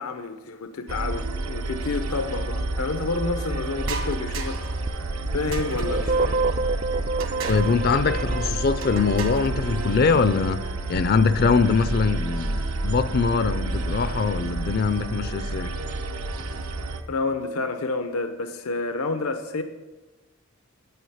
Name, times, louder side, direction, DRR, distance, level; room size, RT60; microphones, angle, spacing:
voice 1, 0.0-4.6 5.3-6.4 17.1-19.6, left 3 dB, 90° left, 0.7 m, -29 dB
sound 1, 0.9-17.0, right 2 dB, 90° right, 1.0 m, -30 dB
sound 2, 3.8-4.8 5.5-6.1 7.2-7.8 8.8-9.5, right 4 dB, 65° right, 1.4 m, -35 dB
sound 3, 4.9-9.7, right 3 dB, 35° right, 0.3 m, -28 dB
voice 2, 7.5-10.6 10.9-15.7, left 5 dB, 45° left, 0.4 m, -22 dB
9.3 x 9.2 x 5.6 m
head